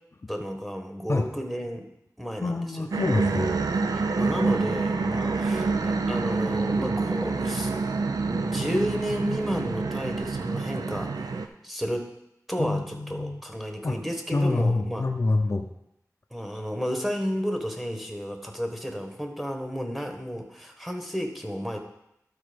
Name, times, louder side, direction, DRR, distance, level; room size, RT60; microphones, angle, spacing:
voice 1, 0.3-1.9 2.2-2.8 3.9-7.8 8.2-12.1 12.5-15.1 16.3-21.8, equal, 5° right, 4 dB, 1.2 m, -32 dB
voice 2, 2.4-3.5 12.6-13.4 13.8-14.0 14.3-15.7, left 2 dB, 45° left, 4 dB, 0.5 m, -26 dB
sound 1, 2.9-11.5, right 4 dB, 80° right, 0.5 m, -27 dB
12.0 x 4.2 x 5.1 m, 0.80 s
wide cardioid pair, 85°, 6 cm